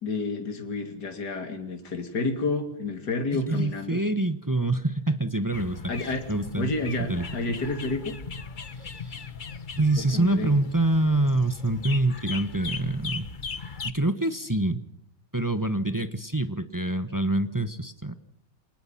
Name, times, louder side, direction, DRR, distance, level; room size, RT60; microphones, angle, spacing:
voice 1, 0.0-4.0 5.9-6.2 6.6-8.2 10.1-10.5, left 3 dB, 50° left, 5 dB, 3.5 m, -30 dB
voice 2, 3.3-6.7 7.1-7.2 8.8-9.2 9.8-13.3 13.8-14.8 15.3-18.1, right 2 dB, 15° right, 10 dB, 1.0 m, -26 dB
sound 1, 5.5-13.9, left 5 dB, 30° left, 0.9 m, -38 dB
27.5 x 20.0 x 5.9 m, 0.71 s
omnidirectional pair, 2.2 m